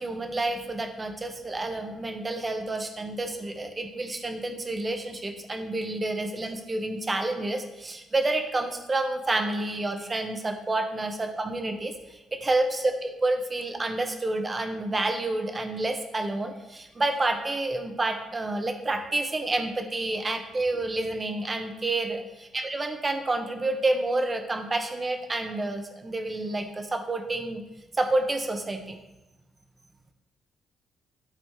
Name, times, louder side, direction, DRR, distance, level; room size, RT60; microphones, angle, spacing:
voice 1, 0.0-27.6 28.0-29.0, right 2 dB, 25° right, 5 dB, 1.0 m, -29 dB
12.5 x 4.2 x 3.1 m, 1.0 s
cardioid pair, 90°, 0 cm